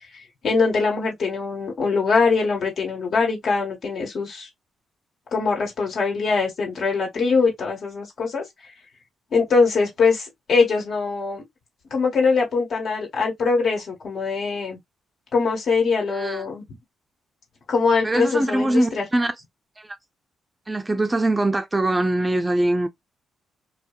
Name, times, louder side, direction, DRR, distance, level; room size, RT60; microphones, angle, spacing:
voice 1, 0.4-4.5 5.3-8.4 9.3-11.4 11.9-14.8 15.3-16.6 17.7-19.0, left 4 dB, 65° left, 1.4 m, -22 dB
voice 2, 16.1-16.5 18.0-19.3 19.8-20.0 20.7-22.9, right 1 dB, 20° right, 0.4 m, -22 dB
2.5 x 2.1 x 2.3 m
supercardioid pair, 55°, 0 cm